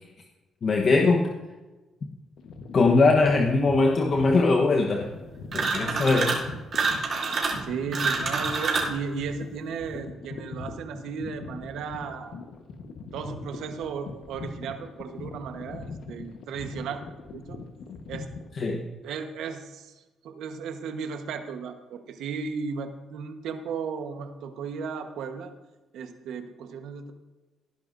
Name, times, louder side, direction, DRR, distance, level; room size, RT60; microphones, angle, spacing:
voice 1, 0.6-1.3 2.7-5.1 5.5-6.4 18.6-18.8, left 3 dB, 45° left, 1 dB, 1.1 m, -21 dB
sound 1, 2.4-18.5, left 4 dB, 75° left, 1.2 m, -41 dB
sound 2, 5.5-6.4 6.7-9.0, right 4 dB, 55° right, 2.9 m, -27 dB
voice 2, 5.8-6.3 7.6-12.4 13.1-17.0 17.3-17.6 18.1-18.3 19.0-19.9 20.2-25.5 25.9-27.1, right 5 dB, 80° right, 7 dB, 1.2 m, -35 dB
18.0 x 11.0 x 2.6 m, 1.1 s
cardioid pair, 90°, 0 cm